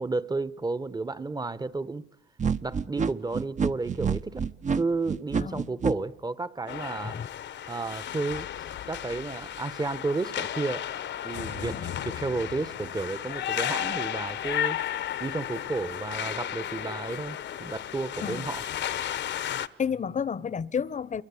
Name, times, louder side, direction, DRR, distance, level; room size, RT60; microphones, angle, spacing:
voice 1, 0.0-2.1 2.6-4.4 4.8-7.2 7.7-8.5 8.9-14.8 15.2-18.7, right 3 dB, 20° right, 1.2 m, -32 dB
sound 1, 2.4-5.9, right 6 dB, 35° right, 1.1 m, -27 dB
voice 2, 5.4-5.7 7.0-7.3 11.7-11.9 18.2-18.4 19.8-21.2, left 7 dB, 40° left, 1.0 m, -31 dB
sound 2, 6.7-19.7, left 10 dB, 65° left, 1.1 m, -34 dB
28.5 x 23.0 x 8.6 m
cardioid pair, 90°, 20 cm